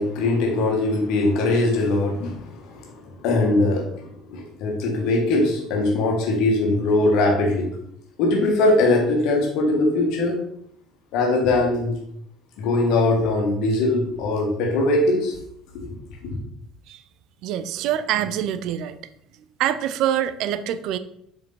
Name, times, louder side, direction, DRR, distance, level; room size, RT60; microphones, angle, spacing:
voice 1, 0.0-4.0 4.3-7.7 8.2-10.4 11.1-12.0 12.6-15.4 15.7-15.9 16.2-16.3, left 2 dB, 60° left, 1 dB, 1.9 m, -21 dB
voice 2, 17.4-19.0 19.6-21.0, right 11 dB, 60° right, 12 dB, 0.4 m, -25 dB
7.3 x 4.6 x 4.2 m, 0.72 s
figure-of-eight pair, 55°, 0 cm